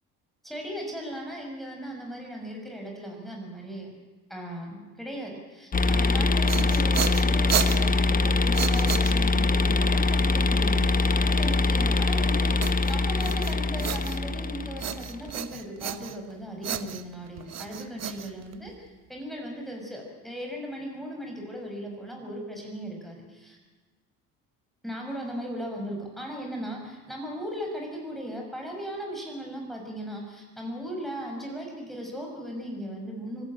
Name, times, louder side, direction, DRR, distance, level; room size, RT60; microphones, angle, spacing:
voice 1, 0.4-3.9 4.3-23.6 24.8-33.4, equal, ahead, 0 dB, 6.7 m, -37 dB
sound 1, 5.7-15.2, left 3 dB, 25° left, 1.2 m, -23 dB
sound 2, 6.3-9.6 12.6-14.4 14.8-16.3 16.6-18.9, right 10 dB, 50° right, 1.2 m, -33 dB
26.0 x 14.5 x 9.1 m, 1.3 s
cardioid pair, 95°, 35 cm